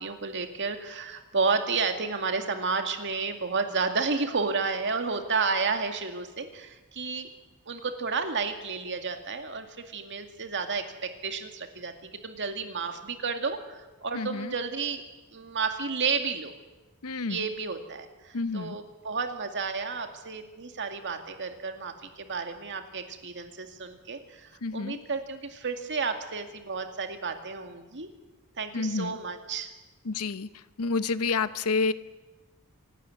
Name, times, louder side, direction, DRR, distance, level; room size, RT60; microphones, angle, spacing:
voice 1, 0.0-7.3 7.7-15.0 15.3-16.5 17.2-28.1 28.6-29.7, right 4 dB, 55° right, 6 dB, 2.2 m, -31 dB
voice 2, 14.1-14.5 17.0-17.5 18.3-18.8 24.6-25.0 28.7-29.2 30.0-30.5 30.8-31.9, left 4 dB, 75° left, 14 dB, 0.8 m, -29 dB
25.5 x 12.5 x 9.5 m, 1.2 s
head